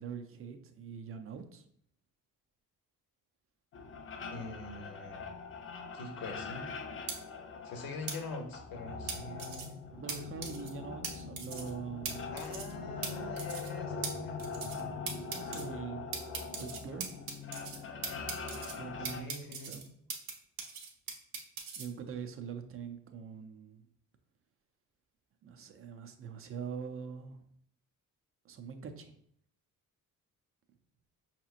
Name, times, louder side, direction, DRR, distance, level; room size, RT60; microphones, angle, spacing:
voice 1, 0.0-1.6 9.9-12.4 14.7-16.2 16.5-17.1 18.8-19.3 19.6-19.9 21.8-23.8 25.4-27.4 28.4-29.1, right 6 dB, 40° right, 7 dB, 0.4 m, -43 dB
sound 1, 3.7-19.2, left 4 dB, 40° left, 0.4 m, -42 dB
voice 2, 4.3-5.2 5.9-6.7 7.6-9.8 12.3-14.4 19.0-19.7, left 3 dB, 90° left, 4 dB, 0.9 m, -44 dB
sound 2, 7.1-7.2 8.1-8.2 9.1-9.7 10.1-10.2 10.4-10.7 11.0-11.1 11.4-11.7 12.1-12.2 12.4-12.7 13.0-13.1 13.4-13.7 14.0-14.1 14.4-14.8 15.1-15.6 16.1-17.8 18.0-18.7 19.1-20.3 20.6-21.9, right 6 dB, 85° right, 0.8 m, -39 dB
5.7 x 2.9 x 2.4 m, 0.66 s
wide cardioid pair, 180°, 34 cm